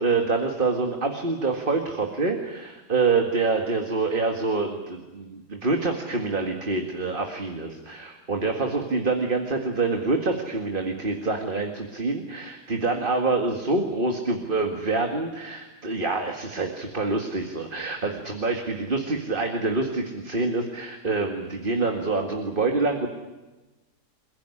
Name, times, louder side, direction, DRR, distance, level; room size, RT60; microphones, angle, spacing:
voice 1, 0.0-23.1, right 3 dB, 30° right, 3 dB, 2.1 m, -26 dB
28.0 x 16.0 x 10.0 m, 1.1 s
omnidirectional pair, 1.7 m